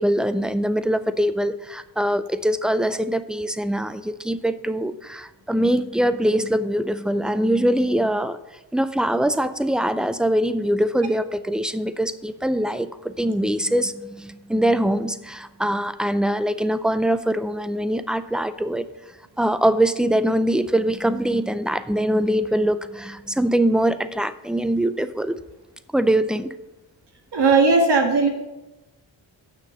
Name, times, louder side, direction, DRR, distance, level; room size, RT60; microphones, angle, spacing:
voice 1, 0.0-8.4 8.7-18.9 19.4-25.4 25.9-26.5, right 1 dB, ahead, 13 dB, 0.4 m, -23 dB
voice 2, 27.3-28.3, right 4 dB, 55° right, 3 dB, 1.9 m, -17 dB
7.4 x 6.4 x 6.6 m, 1.0 s
cardioid pair, 80°, 48 cm